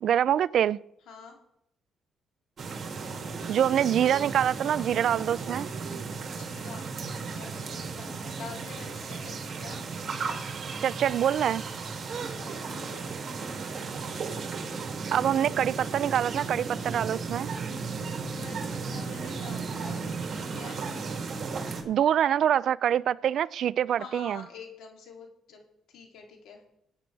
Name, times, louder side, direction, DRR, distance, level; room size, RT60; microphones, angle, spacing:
voice 1, 0.0-0.8 3.5-5.7 10.8-11.6 15.1-17.5 21.8-24.4, right 10 dB, 70° right, 0.4 m, -25 dB
voice 2, 1.1-1.4 6.4-9.8 12.4-13.4 18.4-20.8 23.9-25.6 25.9-26.6, left 5 dB, 80° left, 2.9 m, -47 dB
sound 1, 2.6-21.8, right 4 dB, 50° right, 2.4 m, -35 dB
21.0 x 8.8 x 3.4 m
cardioid pair, 90°, 0 cm